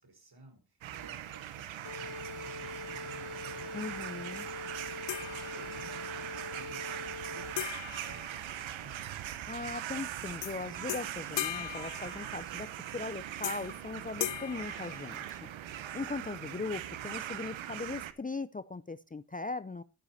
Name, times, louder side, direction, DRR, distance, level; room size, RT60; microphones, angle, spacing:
voice 1, 0.0-4.1 4.8-9.1, right 2 dB, 55° right, 4.7 m, -55 dB
sound 1, 0.8-18.1, right 11 dB, 90° right, 0.9 m, -41 dB
sound 2, 1.8-7.8, left 4 dB, 40° left, 1.3 m, -44 dB
voice 2, 3.7-4.5 9.5-12.7 12.9-15.5 15.9-19.8, left 3 dB, 20° left, 0.6 m, -39 dB
sound 3, 5.1-6.1 7.6-9.1 10.4-10.6 10.9-12.7 13.4-13.8 14.2-15.6, left 13 dB, 70° left, 0.6 m, -39 dB
11.5 x 10.0 x 4.2 m
supercardioid pair, 45°, 45 cm